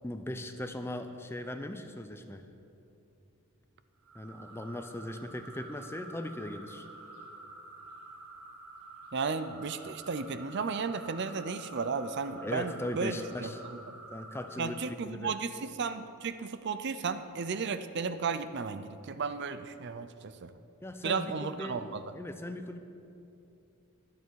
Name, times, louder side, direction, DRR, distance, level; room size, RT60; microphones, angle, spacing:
voice 1, 0.0-2.5 4.1-6.9 12.4-13.6 14.1-14.8 15.0-15.4 20.8-22.8, left 1 dB, 10° left, 8 dB, 0.5 m, -39 dB
sound 1, 4.0-14.9, right 2 dB, 75° right, 1.8 m, -49 dB
voice 2, 9.1-13.5 14.6-20.5 21.0-22.0, right 5 dB, 50° right, 11 dB, 0.5 m, -34 dB
23.0 x 8.1 x 4.7 m, 2.7 s
head